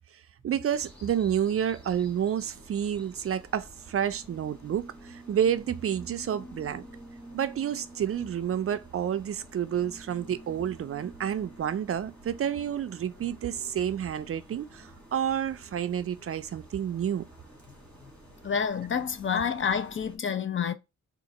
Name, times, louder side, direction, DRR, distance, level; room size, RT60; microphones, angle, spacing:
voice 1, 0.4-6.8 7.3-17.2, right 9 dB, 50° right, 0.4 m, -29 dB
sound 1, 0.7-20.2, right 1 dB, 5° left, 1.5 m, -50 dB
voice 2, 18.4-20.7, left 7 dB, 40° left, 0.5 m, -28 dB
3.7 x 2.5 x 4.0 m
cardioid pair, 110°, 30 cm